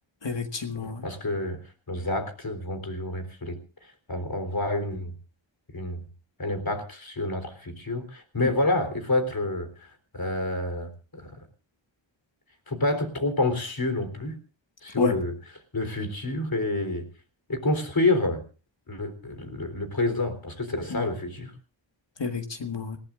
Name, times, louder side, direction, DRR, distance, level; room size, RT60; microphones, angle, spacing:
voice 1, 0.2-1.0 8.4-8.5 15.0-15.1 20.9-21.0 22.2-23.0, left 5 dB, 65° left, 6 dB, 1.8 m, -29 dB
voice 2, 1.0-1.6 1.9-3.6 4.1-5.1 5.7-6.0 6.4-9.7 10.1-11.3 12.7-14.4 14.8-15.4 15.7-17.1 17.5-18.4 18.9-21.5, left 2 dB, 50° left, 8 dB, 3.9 m, -28 dB
28.0 x 17.5 x 2.6 m, 0.35 s
wide cardioid pair, 85°, 46 cm